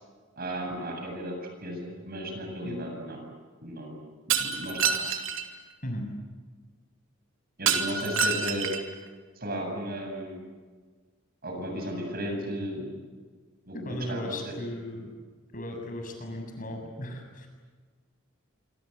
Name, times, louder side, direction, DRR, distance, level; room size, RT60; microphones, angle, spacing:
voice 1, 0.4-1.4 1.6-3.2 3.6-4.0 4.4-4.9 7.6-8.7 9.4-10.4 11.4-12.9 13.7-14.5, equal, 45° right, 2 dB, 7.9 m, -35 dB
Shatter, 4.3-5.4 7.7-8.9, right 6 dB, 75° right, 3.0 m, -27 dB
voice 2, 13.7-15.1 15.5-17.5, left 1 dB, 40° left, 3 dB, 7.2 m, -36 dB
26.5 x 26.0 x 8.2 m, 1.5 s
head